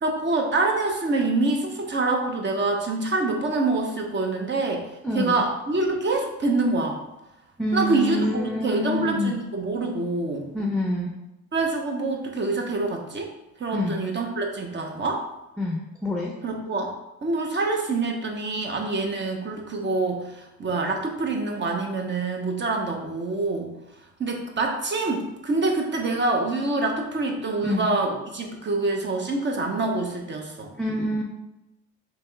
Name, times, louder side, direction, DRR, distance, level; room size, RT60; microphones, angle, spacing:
voice 1, 0.0-7.0 7.7-10.5 11.5-13.3 13.6-15.3 16.4-16.9 17.2-23.7 24.2-30.7, right 3 dB, 35° right, 2 dB, 0.9 m, -26 dB
voice 2, 5.0-5.4 7.6-9.3 10.5-11.1 13.7-14.0 15.6-16.3 27.6-27.9 30.8-31.2, left 1 dB, 5° left, -1 dB, 0.6 m, -26 dB
3.4 x 3.0 x 4.6 m, 0.96 s
cardioid pair, 90°, 30 cm